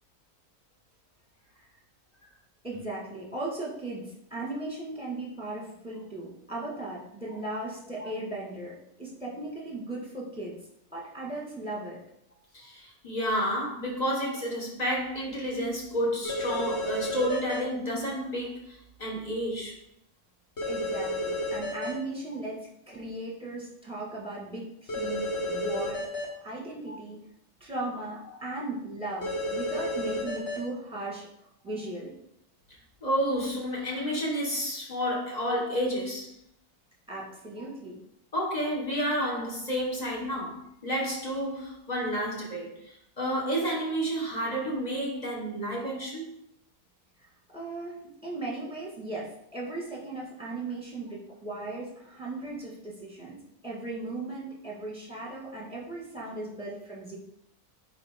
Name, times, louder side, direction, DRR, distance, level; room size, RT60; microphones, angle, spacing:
voice 1, 2.6-10.6 10.9-12.0 20.7-26.0 26.4-27.2 27.6-31.3 31.6-32.1 37.1-38.0 47.2-53.4 53.6-57.2, right 2 dB, 5° right, -4 dB, 1.8 m, -37 dB
voice 2, 12.5-19.7 26.9-27.0 33.0-36.3 38.3-46.3, equal, 25° left, -3 dB, 1.6 m, -30 dB
sound 1, 16.2-17.6 20.6-21.9 24.9-26.2 29.2-30.6, left 1 dB, 45° left, 1.7 m, -31 dB
9.2 x 3.8 x 3.7 m, 0.76 s
omnidirectional pair, 1.6 m